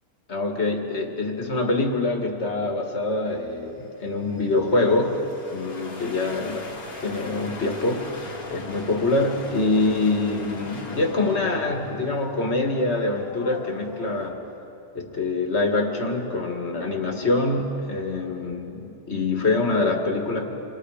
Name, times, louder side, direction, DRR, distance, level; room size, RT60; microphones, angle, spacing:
voice 1, 0.3-5.2 5.5-14.4 14.9-20.5, left 2 dB, 45° left, 2 dB, 2.2 m, -25 dB
sound 1, 3.5-14.3, left 2 dB, 80° left, 2.7 m, -40 dB
27.5 x 22.5 x 5.0 m, 2.9 s
omnidirectional pair, 1.6 m